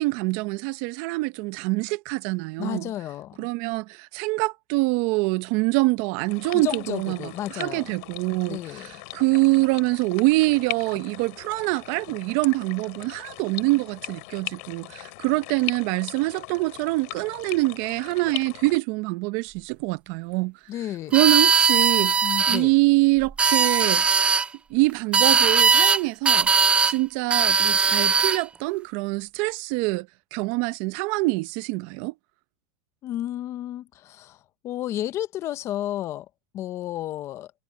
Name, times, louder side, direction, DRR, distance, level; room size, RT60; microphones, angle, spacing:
voice 1, 0.0-2.9 3.4-8.6 9.1-20.5 21.1-24.0 24.7-26.5 26.9-32.1, right 23 dB, 55° right, 0.8 m, -25 dB
voice 2, 2.6-3.5 6.5-7.9 8.5-8.9 20.7-21.2 22.2-22.7 33.0-36.3 36.5-37.5, left 12 dB, 35° left, 0.8 m, -32 dB
sound 1, 6.3-18.8, left 27 dB, 65° left, 2.9 m, -39 dB
sound 2, 21.1-22.6 23.2-24.5 25.1-26.0 26.3-27.0 27.3-28.4, right 5 dB, 15° right, 0.4 m, -19 dB
supercardioid pair, 145°, 8 cm